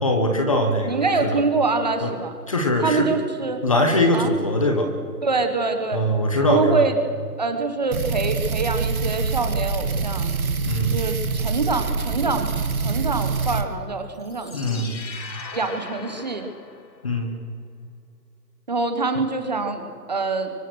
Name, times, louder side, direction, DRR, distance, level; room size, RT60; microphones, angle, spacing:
voice 1, 0.0-1.4 2.0-2.1 2.5-3.1 3.6-4.9 5.9-6.9 10.6-11.0 14.5-14.9 17.0-17.3, left 1 dB, 20° left, 5 dB, 1.4 m, -22 dB
voice 2, 0.8-2.3 2.8-3.6 4.1-4.3 5.2-6.0 6.4-6.9 7.4-10.3 10.9-12.5 12.8-14.8 15.5-16.5 18.7-20.5, right 3 dB, 25° right, 6 dB, 1.4 m, -25 dB
sound 1, 7.9-13.6, right 4 dB, 55° right, 2.1 m, -25 dB
sound 2, 14.1-17.3, left 4 dB, 90° left, 2.2 m, -39 dB
29.0 x 24.5 x 6.3 m, 2.2 s
hypercardioid pair, 175°, 50 cm